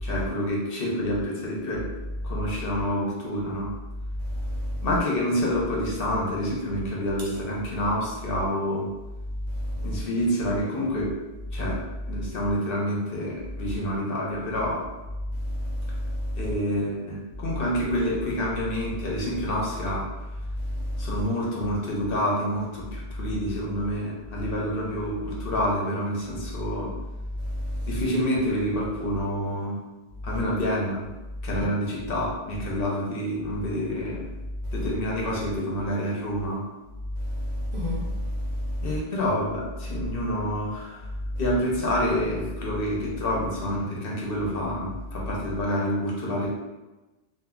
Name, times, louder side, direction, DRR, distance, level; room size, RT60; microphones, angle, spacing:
voice 1, 0.0-1.8 2.2-3.7 4.8-8.9 9.8-11.1 11.5-11.8 12.1-14.8 16.4-20.1 21.0-26.9 27.9-29.8 30.2-31.1 31.4-34.3 34.7-36.6 38.8-41.1 41.4-46.5, equal, 65° left, -3 dB, 0.9 m, -28 dB
voice 2, 4.3-4.9 9.6-10.0 15.5-16.5 20.8-21.1 27.4-28.0 37.2-39.0, left 1 dB, 55° right, -4 dB, 0.8 m, -30 dB
2.5 x 2.2 x 3.6 m, 1.1 s
omnidirectional pair, 1.1 m